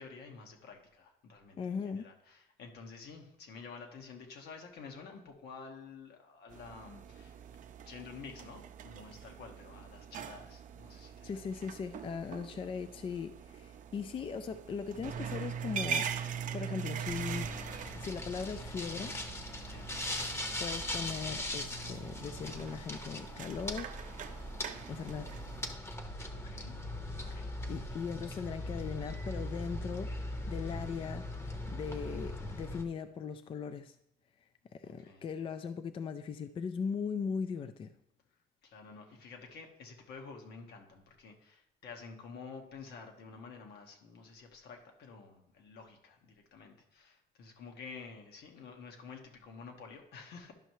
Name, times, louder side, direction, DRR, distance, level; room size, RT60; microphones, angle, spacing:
voice 1, 0.0-7.4 7.8-11.5 19.6-20.0 26.2-26.9 27.2-27.8 34.8-35.2 38.3-50.5, left 5 dB, 75° left, 3 dB, 1.3 m, -50 dB
voice 2, 1.6-2.1 11.2-16.1 16.5-17.5 17.9-19.1 20.6-23.9 24.9-25.3 27.7-30.1 30.5-31.3 31.7-34.0 34.7-37.9, left 6 dB, 30° left, 10 dB, 0.4 m, -39 dB
sound 1, 6.5-25.7, right 7 dB, 50° right, 0.6 m, -43 dB
sound 2, 17.1-32.8, left 1 dB, 15° left, 0.8 m, -40 dB
11.0 x 5.5 x 3.1 m, 0.78 s
cardioid pair, 110°, 17 cm